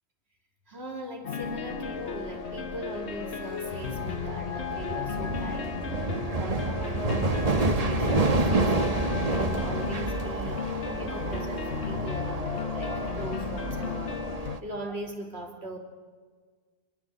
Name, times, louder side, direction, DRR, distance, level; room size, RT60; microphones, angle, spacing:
voice 1, 0.7-14.2 14.6-15.8, right 1 dB, 75° right, 3 dB, 3.2 m, -40 dB
sound 1, 1.2-14.6, left 7 dB, 90° left, 1.3 m, -34 dB
sound 2, 1.4-14.6, right 3 dB, 35° right, 1.2 m, -30 dB
24.5 x 21.0 x 7.6 m, 1.5 s
omnidirectional pair, 1.1 m